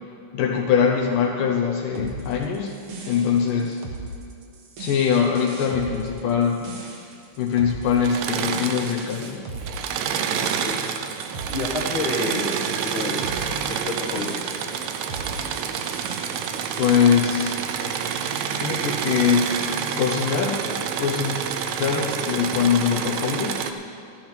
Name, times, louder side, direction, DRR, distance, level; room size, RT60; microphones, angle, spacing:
voice 1, 0.3-2.8 3.1-3.8 4.8-6.7 7.4-9.4 16.8-17.6 18.5-19.5 20.0-20.7 21.0-21.5 21.8-23.6, left 7 dB, 80° left, 0 dB, 2.5 m, -22 dB
sound 1, 1.9-17.0, right 3 dB, 60° right, 1.8 m, -38 dB
Engine / Mechanisms, 7.9-9.3 9.6-23.7, right 7 dB, 80° right, 1.6 m, -28 dB
voice 2, 10.3-10.8 11.5-13.2 13.6-14.7, left 3 dB, 60° left, 0 dB, 1.4 m, -30 dB
13.5 x 12.0 x 4.4 m, 2.6 s
omnidirectional pair, 3.8 m